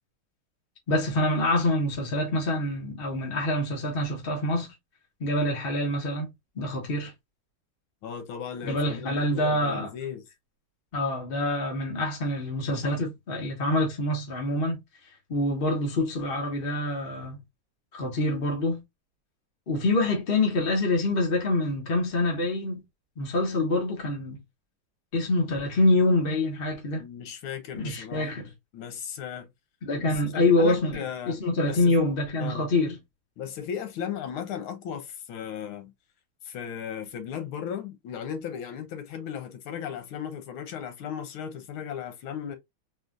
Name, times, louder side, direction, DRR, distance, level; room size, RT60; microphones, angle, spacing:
voice 1, 0.9-4.7 5.2-7.1 8.6-9.9 10.9-14.8 15.3-17.4 17.9-18.8 19.7-22.8 23.2-24.4 25.1-27.0 27.7-28.5 29.8-33.0, left 2 dB, 35° left, 1.1 m, -26 dB
voice 2, 8.0-10.2 27.0-29.5 30.0-31.4 31.7-31.9 32.4-32.7 33.4-35.9 36.5-42.6, left 8 dB, 85° left, 1.7 m, -36 dB
4.3 x 2.6 x 2.4 m
omnidirectional pair, 2.3 m